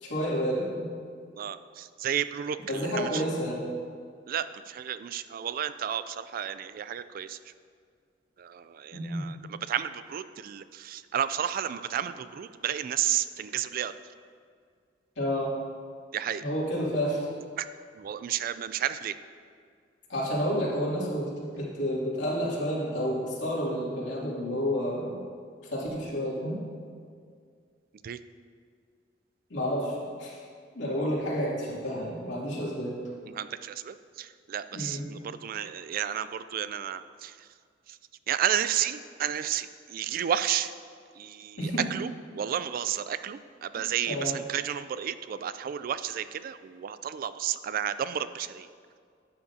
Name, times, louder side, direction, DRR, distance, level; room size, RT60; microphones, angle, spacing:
voice 1, 0.0-0.9 2.7-3.6 8.9-9.2 15.2-15.5 16.4-17.3 20.1-25.2 25.7-26.6 29.5-30.4 30.7-32.9 34.7-35.1 41.6-41.9 44.1-44.3, equal, 80° left, -6 dB, 2.5 m, -30 dB
voice 2, 1.4-3.2 4.3-7.4 8.4-9.4 9.7-13.9 16.1-16.4 17.6-17.7 18.0-19.1 28.0-28.2 33.3-37.3 38.3-40.7 41.2-42.1 42.3-48.7, right 9 dB, 50° right, 13 dB, 0.3 m, -32 dB
11.5 x 8.6 x 2.7 m, 2.1 s
head